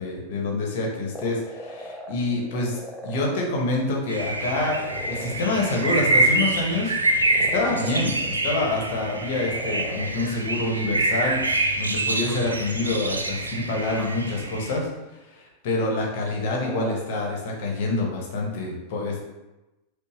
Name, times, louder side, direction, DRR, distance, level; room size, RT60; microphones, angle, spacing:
voice 1, 0.0-6.9 7.4-14.9 15.3-19.2, left 2 dB, 50° left, -1 dB, 1.0 m, -27 dB
sound 1, 1.1-3.7 4.2-5.4 5.7-6.5 7.1-8.4 9.1-10.3 11.5-11.6 12.3-13.0 13.4-13.5 14.0-14.1 16.2-17.2, equal, 10° left, 0.6 m, -38 dB
sound 2, 4.1-14.8, right 2 dB, 80° right, 0.3 m, -26 dB
5.4 x 2.1 x 3.0 m, 1.0 s
figure-of-eight pair, 90°, 0 cm